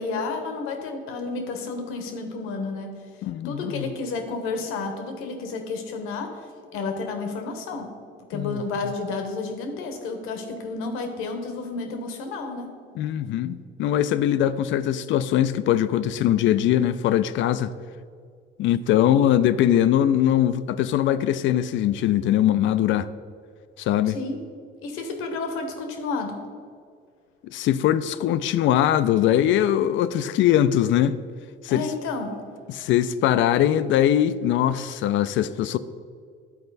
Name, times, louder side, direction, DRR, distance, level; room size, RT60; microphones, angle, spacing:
voice 1, 0.0-3.0 3.4-6.4 6.7-7.9 8.3-12.7 24.0-24.4 24.8-26.4 31.7-32.4, left 3 dB, 85° left, 1.1 m, -31 dB
voice 2, 3.2-3.9 8.3-8.6 13.0-17.7 18.6-23.1 23.8-24.2 27.4-31.2 31.6-31.9 32.7-35.8, left 11 dB, 65° left, 0.4 m, -21 dB
11.0 x 4.4 x 4.0 m
cardioid pair, 90°, 21 cm